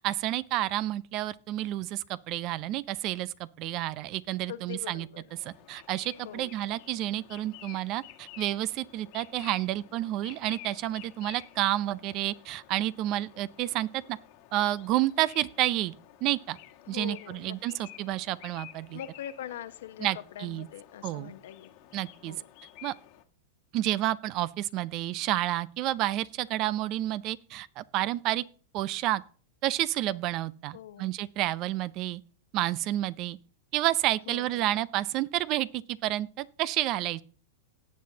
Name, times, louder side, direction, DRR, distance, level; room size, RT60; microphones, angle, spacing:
voice 1, 0.0-5.1 5.5-14.2 14.5-15.9 16.2-16.6 16.9-19.0 20.0-20.7 21.0-21.3 21.9-22.4 22.8-22.9 23.7-28.4 28.7-29.2 29.6-32.2 32.5-33.4 33.7-37.2, right 15 dB, 45° right, 0.5 m, -30 dB
voice 2, 4.5-5.2 6.2-6.5 16.9-17.6 18.9-21.8 22.2-22.5 30.7-31.1 34.3-34.7, left 11 dB, 75° left, 0.9 m, -42 dB
sound 1, 5.3-23.2, left 14 dB, 55° left, 1.4 m, -52 dB
17.5 x 7.6 x 2.8 m
hypercardioid pair, 120°, 0 cm